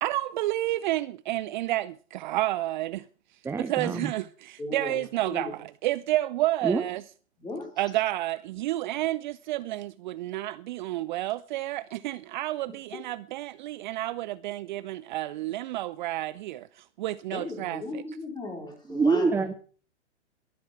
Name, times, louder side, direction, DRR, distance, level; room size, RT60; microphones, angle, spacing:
voice 1, 0.0-3.1 3.6-7.0 7.8-18.0, right 16 dB, 45° right, 0.6 m, -30 dB
voice 2, 3.4-4.0 6.6-6.8 18.9-19.5, right 4 dB, 5° right, 0.7 m, -25 dB
voice 3, 4.6-5.5 7.4-7.7 17.3-19.4, left 2 dB, 10° left, 4.4 m, -37 dB
22.0 x 9.5 x 4.6 m
figure-of-eight pair, 110°, 34 cm